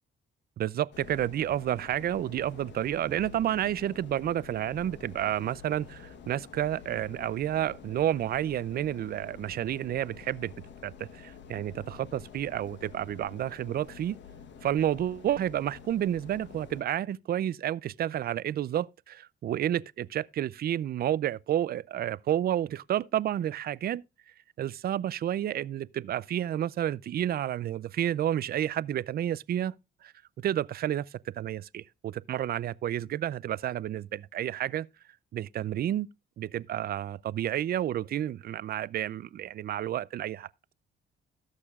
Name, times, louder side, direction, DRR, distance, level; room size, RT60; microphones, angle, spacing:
voice 1, 0.6-10.5 10.8-14.2 14.6-24.0 24.6-29.7 30.0-30.1 30.4-31.0 31.3-34.9 35.3-36.1 36.4-40.5, right 11 dB, 50° right, 0.4 m, -30 dB
sound 1, 0.9-16.8, left 7 dB, 65° left, 1.1 m, -48 dB
17.5 x 6.6 x 2.4 m
cardioid pair, 90°, 20 cm